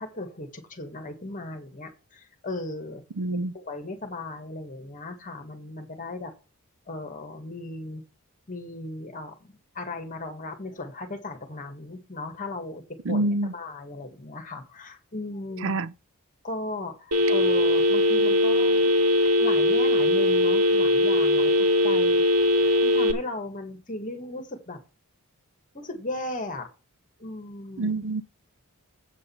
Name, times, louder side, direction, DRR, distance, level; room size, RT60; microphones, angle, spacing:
voice 1, 0.0-3.0 3.5-6.3 6.9-8.0 8.5-12.8 13.1-13.2 13.5-15.8 16.4-18.9 19.4-22.2 22.8-24.8 25.7-26.7 27.2-28.0, left 2 dB, 35° left, 1.9 m, -36 dB
voice 2, 3.2-3.5 13.0-13.5 15.6-15.9 27.8-28.2, right 2 dB, 60° right, 0.5 m, -26 dB
Telephone, 17.1-23.1, left 1 dB, 85° right, 1.4 m, -20 dB
8.2 x 5.4 x 7.2 m
head